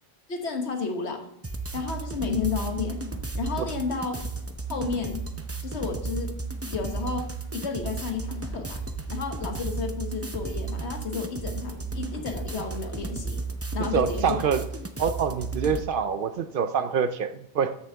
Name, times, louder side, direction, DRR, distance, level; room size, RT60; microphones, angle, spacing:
voice 1, 0.3-1.3 1.7-3.1 3.4-4.2 4.7-5.3 5.6-6.3 6.7-8.8 9.1-13.4 13.7-14.3, left 5 dB, 80° left, 4 dB, 1.5 m, -32 dB
sound 1, 1.4-15.9, right 3 dB, 15° right, 0.6 m, -34 dB
voice 2, 13.8-14.6 15.0-17.8, right 6 dB, 60° right, 11 dB, 0.7 m, -26 dB
13.5 x 6.5 x 3.4 m, 0.79 s
omnidirectional pair, 1.1 m